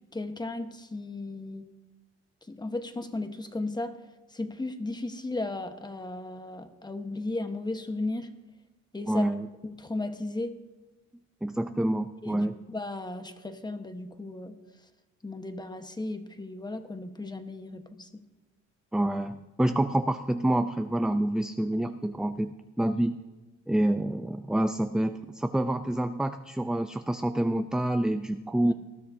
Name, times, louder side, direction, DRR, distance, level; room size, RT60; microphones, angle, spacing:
voice 1, 0.0-1.7 2.5-4.0 4.3-8.3 8.9-9.3 9.6-10.5 12.2-14.6 15.2-18.2 28.6-28.7, left 2 dB, 15° left, 7 dB, 1.2 m, -35 dB
voice 2, 9.1-9.5 11.4-12.5 18.9-22.5 22.8-23.2 23.7-28.7, right 1 dB, ahead, 8 dB, 0.4 m, -27 dB
19.5 x 13.5 x 2.7 m, 1.1 s
cardioid pair, 90°, 30 cm